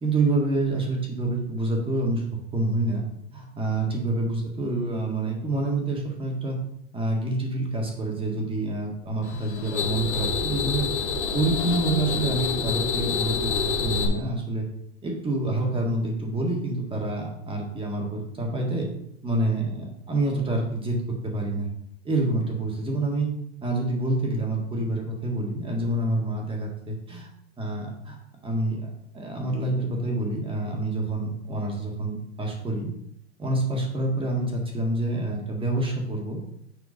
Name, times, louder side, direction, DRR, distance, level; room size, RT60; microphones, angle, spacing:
voice 1, 0.0-2.2 2.5-3.0 3.3-6.6 6.9-10.9 11.3-13.5 13.8-14.7 15.0-18.9 19.2-21.0 21.2-21.7 22.0-23.3 23.6-27.2 27.6-28.2 28.4-28.9 29.1-32.9 33.4-36.4, right 2 dB, 15° right, 0 dB, 1.7 m, -27 dB
sound 1, 9.2-14.1, left 5 dB, 90° left, 2.0 m, -27 dB
6.8 x 4.5 x 5.1 m, 0.73 s
supercardioid pair, 130°, 34 cm